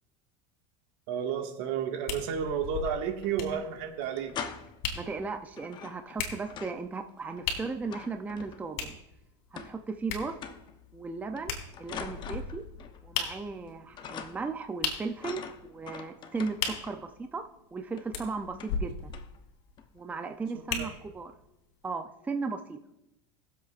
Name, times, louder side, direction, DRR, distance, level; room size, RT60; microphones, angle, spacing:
voice 1, 1.1-4.3 20.5-21.0, right 7 dB, 70° right, 3 dB, 1.7 m, -32 dB
sound 1, 2.1-21.3 21.9-22.0, left 6 dB, 65° left, 2.8 m, -39 dB
sound 2, 2.6-3.3 3.6-3.7 4.0-4.9 5.5-6.9 7.1-8.9 9.6-10.0 10.3-10.8 11.4-13.0 13.3-13.7 14.0-14.6 15.2-17.1 18.0-18.1 18.5-18.8 19.1-19.4 19.8-20.0, left 7 dB, 35° left, 0.8 m, -44 dB
voice 2, 4.9-9.0 9.5-10.3 10.9-12.6 13.0-16.6 16.8-19.1 19.9-21.3 21.8-22.8, right 4 dB, 10° right, 6 dB, 0.5 m, -36 dB
21.5 x 7.6 x 2.5 m, 0.88 s
supercardioid pair, 135°, 14 cm